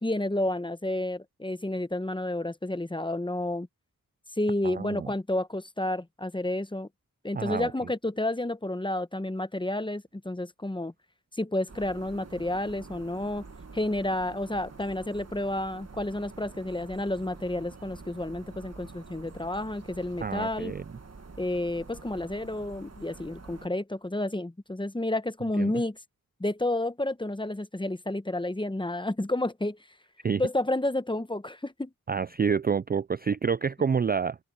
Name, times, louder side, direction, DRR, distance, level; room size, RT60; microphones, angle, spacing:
voice 1, 0.0-3.7 4.4-6.9 7.2-10.9 11.4-13.4 13.7-20.7 21.4-26.0 26.4-29.8 30.4-31.9, left 1 dB, 15° left, 1.0 m, -30 dB
voice 2, 4.6-5.1 7.3-7.7 20.2-20.8 25.6-25.7 30.2-30.4 32.1-34.4, right 6 dB, 25° right, 0.4 m, -28 dB
sound 1, 11.7-23.7, right 4 dB, 45° right, 1.9 m, -47 dB
open air
cardioid pair, 45°, 36 cm